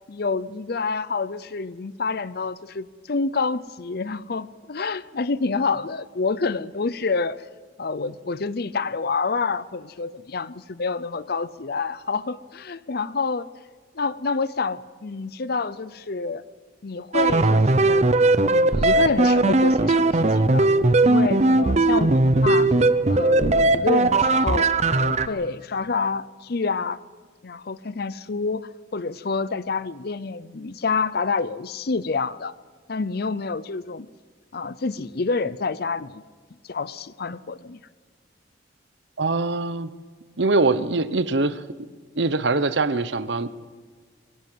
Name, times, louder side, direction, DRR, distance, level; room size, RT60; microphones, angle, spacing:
voice 1, 0.1-7.4 7.8-13.5 13.9-16.4 16.8-18.1 18.4-20.7 21.0-22.7 23.1-27.0 27.4-32.5 32.9-34.1 34.5-36.2 36.6-37.8, left 4 dB, 55° left, 16 dB, 0.6 m, -28 dB
sound 1, 17.1-25.3, right 2 dB, 35° right, 0.7 m, -18 dB
voice 2, 39.2-39.9 40.4-41.6 42.2-43.5, right 3 dB, 65° right, 13 dB, 1.0 m, -23 dB
22.5 x 17.0 x 7.6 m, 1.5 s
head